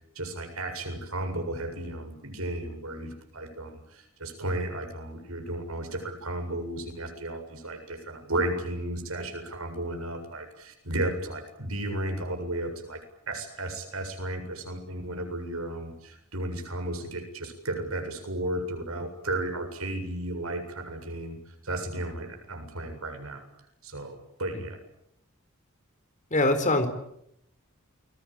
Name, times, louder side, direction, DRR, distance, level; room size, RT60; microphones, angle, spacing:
voice 1, 0.2-13.0 13.3-23.4 23.8-24.8, right 1 dB, 85° right, 5 dB, 7.5 m, -34 dB
voice 2, 26.3-26.9, left 2 dB, 35° left, 8 dB, 4.2 m, -23 dB
29.5 x 22.0 x 9.0 m, 0.77 s
head